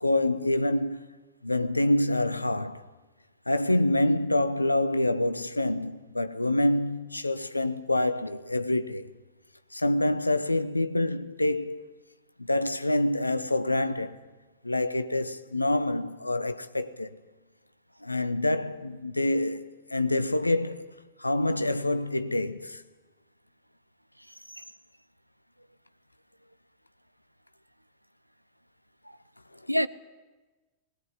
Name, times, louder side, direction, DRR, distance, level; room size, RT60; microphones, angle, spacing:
voice 1, 0.0-1.1 1.4-2.8 3.5-9.1 9.7-11.9 12.4-14.3 14.6-17.1 18.0-20.9 21.2-22.8 29.5-29.6, left 1 dB, 85° left, 0.9 m, -26 dB
voice 2, 24.3-24.6 29.0-29.2 29.7-29.9, equal, 90° right, 0.6 m, -29 dB
19.0 x 19.0 x 9.9 m
figure-of-eight pair, 90°, 0 cm